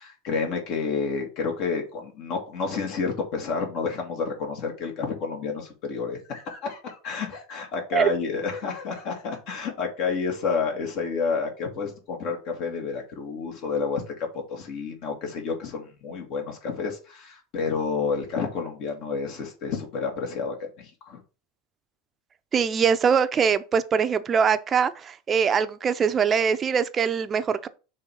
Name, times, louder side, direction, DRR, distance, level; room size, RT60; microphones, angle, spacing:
voice 1, 0.0-21.2, left 5 dB, 60° left, 1.8 m, -30 dB
voice 2, 22.5-27.7, right 6 dB, 30° right, 0.6 m, -22 dB
5.3 x 3.4 x 5.7 m
supercardioid pair, 115°, 0 cm